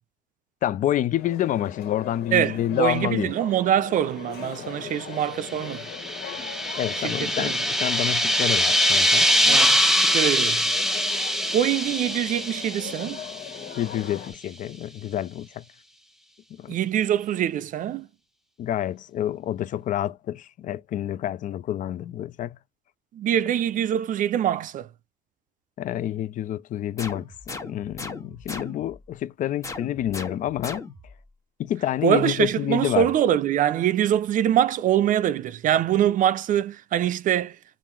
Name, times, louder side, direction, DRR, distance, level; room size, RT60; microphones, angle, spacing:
voice 1, 0.6-3.3 6.7-9.3 13.8-15.6 16.6-16.8 18.6-22.6 25.8-30.8 31.6-33.1, left 12 dB, 50° left, 0.4 m, -28 dB
sound 1, 1.2-14.3, left 9 dB, 70° left, 1.5 m, -40 dB
voice 2, 2.3-5.9 7.0-7.6 9.5-10.6 11.5-13.2 16.7-18.1 23.1-24.9 32.0-37.6, right 10 dB, 50° right, 0.4 m, -24 dB
sound 2, 5.4-13.8, equal, ahead, 0.7 m, -23 dB
sound 3, 27.0-29.0 29.6-31.2, left 3 dB, 20° left, 1.3 m, -38 dB
3.6 x 2.5 x 4.4 m
cardioid pair, 110°, 17 cm